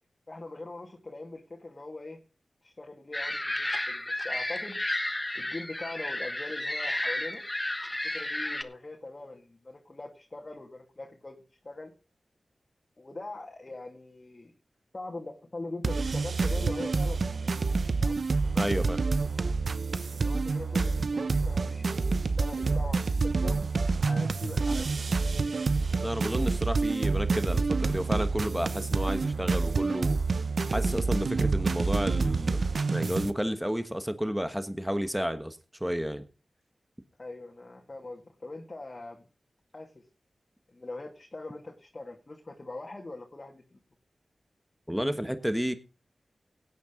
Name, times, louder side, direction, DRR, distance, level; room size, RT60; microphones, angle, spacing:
voice 1, 0.3-2.2 2.6-4.8 5.3-7.4 8.0-11.9 13.0-14.5 14.9-17.5 18.0-18.2 20.1-23.6 24.1-24.9 37.2-39.3 39.7-39.9 40.7-43.8, left 2 dB, 40° left, 0 dB, 2.3 m, -42 dB
sound 1, 3.1-8.6, left 1 dB, 25° left, 1.2 m, -32 dB
sound 2, 15.8-33.3, right 4 dB, 70° right, 0.8 m, -28 dB
voice 2, 18.5-19.0 26.0-30.4 30.7-32.6 32.9-36.2 44.9-45.7, equal, 5° right, 10 dB, 1.3 m, -31 dB
16.5 x 9.4 x 3.8 m, 0.32 s
cardioid pair, 45°, 0 cm